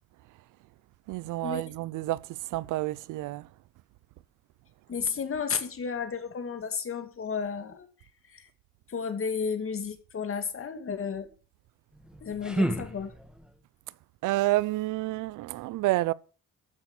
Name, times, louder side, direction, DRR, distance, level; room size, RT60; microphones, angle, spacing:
voice 1, 1.1-3.5 14.2-16.1, right 18 dB, 90° right, 0.6 m, -29 dB
voice 2, 4.9-7.9 8.3-8.5 8.9-11.3 12.2-13.1, left 6 dB, 45° left, 2.2 m, -32 dB
sound 1, 11.9-13.6, right 1 dB, 5° right, 1.9 m, -31 dB
14.0 x 6.0 x 6.5 m
cardioid pair, 90°, 30 cm